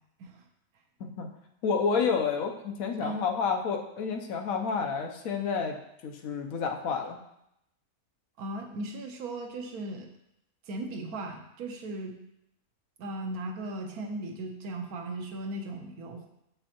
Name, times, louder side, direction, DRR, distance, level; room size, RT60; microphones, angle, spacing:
voice 1, 1.6-5.8 6.0-7.2, left 5 dB, 75° left, 3 dB, 1.1 m, -29 dB
voice 2, 8.4-10.1 10.7-12.2 13.0-16.3, right 2 dB, 85° right, 3 dB, 1.3 m, -37 dB
7.1 x 5.4 x 2.9 m, 0.80 s
omnidirectional pair, 1.5 m